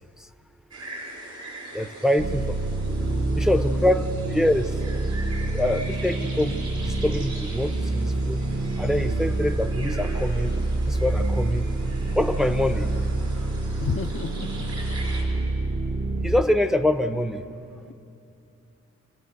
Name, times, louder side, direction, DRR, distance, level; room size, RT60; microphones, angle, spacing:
sound 1, 0.7-15.2, right 2 dB, 70° right, 4.4 m, -41 dB
voice 1, 1.7-2.6 2.9-3.0 3.4-4.8 5.5-6.6 6.8-8.4 8.8-10.5 10.8-11.7 12.2-12.9 16.2-17.4, left 1 dB, ahead, 8 dB, 0.7 m, -24 dB
sound 2, 2.2-16.4, right 2 dB, 40° right, 0.9 m, -27 dB
voice 2, 3.0-3.9 13.8-14.7, left 6 dB, 45° left, 8 dB, 0.6 m, -33 dB
27.0 x 17.0 x 6.5 m, 2.7 s
wide cardioid pair, 90°, 30 cm